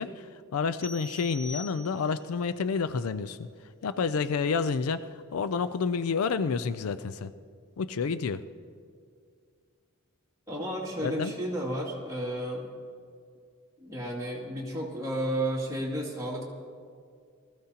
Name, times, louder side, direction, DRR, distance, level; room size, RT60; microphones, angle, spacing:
voice 1, 0.0-3.5 3.8-7.3 7.8-8.4 11.0-11.3, left 5 dB, 70° left, 13 dB, 0.4 m, -29 dB
sound 1, 0.8-2.3, left 1 dB, 40° left, 2.2 m, -44 dB
voice 2, 10.5-12.7 13.8-16.4, right 1 dB, 15° right, -4 dB, 2.4 m, -32 dB
20.0 x 14.0 x 2.9 m, 2.2 s
head